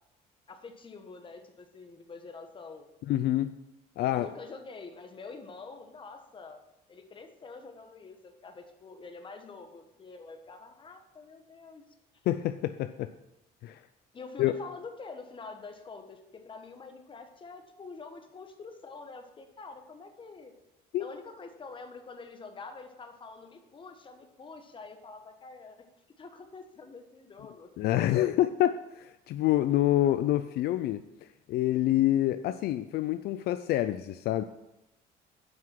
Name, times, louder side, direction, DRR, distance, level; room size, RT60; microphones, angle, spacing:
voice 1, 0.5-2.9 4.0-6.6 6.9-11.8 14.1-20.5 21.0-25.8 26.2-27.7, left 4 dB, 30° left, 6 dB, 1.2 m, -46 dB
voice 2, 3.1-3.5 4.0-4.3 12.3-13.1 13.6-13.8 14.4-14.5 20.9-21.1 27.8-31.0 31.5-34.4, left 13 dB, 70° left, 11 dB, 0.4 m, -27 dB
7.8 x 5.8 x 6.0 m, 0.92 s
cardioid pair, 110°, 17 cm